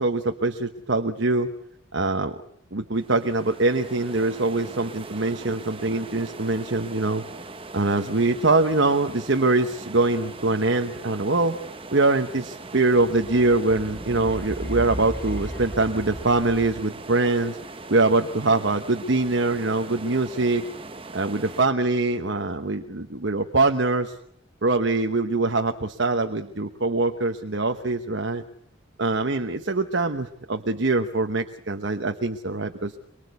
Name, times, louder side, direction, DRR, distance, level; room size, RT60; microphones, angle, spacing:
voice 1, 0.0-1.5 1.9-2.4 2.7-7.2 7.7-11.6 11.9-17.6 17.9-20.7 21.1-24.2 24.6-28.4 29.0-32.9, right 2 dB, 60° right, 6 dB, 1.1 m, -23 dB
sound 1, 2.9-21.6, right 3 dB, 25° right, 1.0 m, -41 dB
sound 2, 13.0-17.1, equal, 10° left, 3.9 m, -36 dB
24.0 x 23.5 x 8.2 m, 0.69 s
head